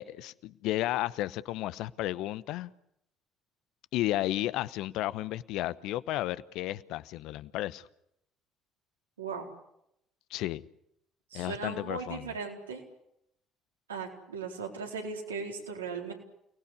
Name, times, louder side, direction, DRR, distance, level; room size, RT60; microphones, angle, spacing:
voice 1, 0.0-2.7 3.9-7.9 10.3-10.6 11.3-12.2, left 15 dB, 65° left, 1.0 m, -33 dB
voice 2, 11.3-12.8 13.9-16.1, right 5 dB, 85° right, 4.2 m, -37 dB
29.5 x 20.0 x 8.3 m
figure-of-eight pair, 50°, 0 cm